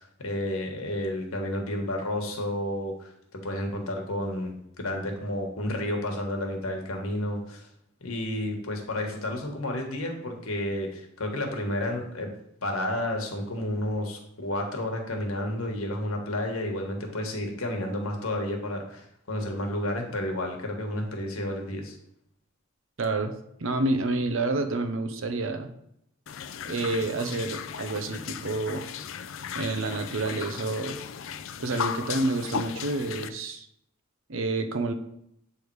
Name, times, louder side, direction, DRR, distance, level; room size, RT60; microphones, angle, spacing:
voice 1, 0.0-7.7 8.0-12.3 12.6-22.0, left 1 dB, 85° left, 2 dB, 1.4 m, -31 dB
voice 2, 23.0-25.7 26.6-28.9 29.5-31.0 31.6-33.7 34.3-34.9, right 2 dB, 70° right, 8 dB, 0.6 m, -29 dB
sound 1, 26.3-33.3, left 7 dB, 65° left, 0.4 m, -36 dB
8.1 x 3.4 x 4.6 m, 0.77 s
head